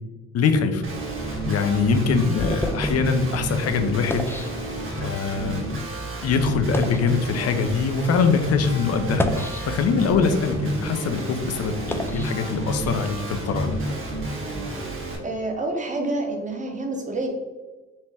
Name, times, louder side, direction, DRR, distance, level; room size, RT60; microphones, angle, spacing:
voice 1, 0.3-0.8 1.3-4.3 5.0-5.6 6.2-9.2 9.7-13.8, left 5 dB, 55° left, 7 dB, 0.6 m, -23 dB
Guitar, 0.8-15.2, right 2 dB, 45° right, 1.3 m, -30 dB
sound 1, 1.5-5.2 5.9-6.0 6.6-7.1 7.9-8.0 9.0-10.1 10.6-13.1, left 1 dB, 10° left, 0.3 m, -32 dB
voice 2, 15.2-17.3, right 2 dB, 25° right, 2 dB, 0.9 m, -28 dB
5.5 x 2.1 x 3.4 m, 1.3 s
cardioid pair, 90°, 30 cm